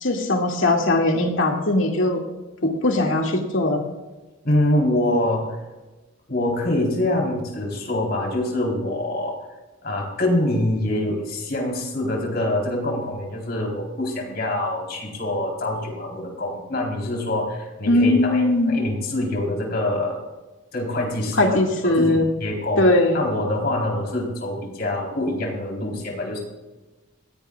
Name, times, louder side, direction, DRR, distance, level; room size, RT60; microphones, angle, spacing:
voice 1, 0.0-2.2 2.8-3.8 17.9-18.8 21.4-22.3 22.8-23.2, left 2 dB, 65° left, 1 dB, 2.3 m, -19 dB
voice 2, 4.4-5.6 6.3-9.3 9.8-20.2 20.7-22.9 23.1-26.4, left 1 dB, 50° left, 0 dB, 4.0 m, -25 dB
20.5 x 16.5 x 2.4 m, 1.1 s
head